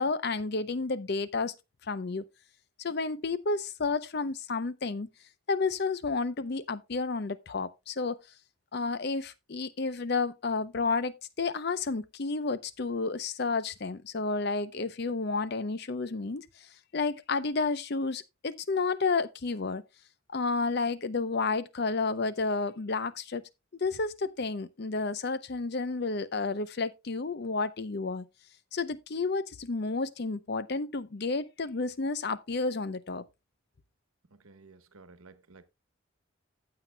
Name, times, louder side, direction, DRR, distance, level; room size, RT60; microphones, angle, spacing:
voice 1, 0.0-1.5 1.9-2.2 2.8-5.1 5.5-8.2 8.7-16.5 16.9-19.8 20.3-23.4 23.8-28.2 28.7-33.2, left 4 dB, 50° left, 0.6 m, -31 dB
voice 2, 34.3-35.6, right 3 dB, 85° right, 1.1 m, -55 dB
15.0 x 7.6 x 2.2 m
head